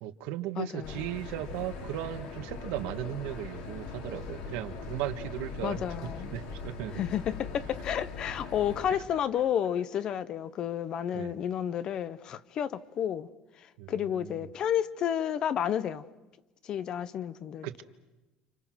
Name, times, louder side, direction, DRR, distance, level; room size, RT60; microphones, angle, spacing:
voice 1, 0.0-5.8 6.3-7.0 11.1-11.3 13.8-13.9 17.6-17.8, right 13 dB, 80° right, 8 dB, 1.5 m, -36 dB
voice 2, 0.6-1.0 5.6-6.3 6.9-13.3 13.6-16.1 16.6-17.8, left 9 dB, 35° left, 16 dB, 0.8 m, -31 dB
sound 1, 0.8-9.0, left 4 dB, 85° left, 5.2 m, -41 dB
30.0 x 27.5 x 6.3 m, 1.1 s
cardioid pair, 180°, 2 cm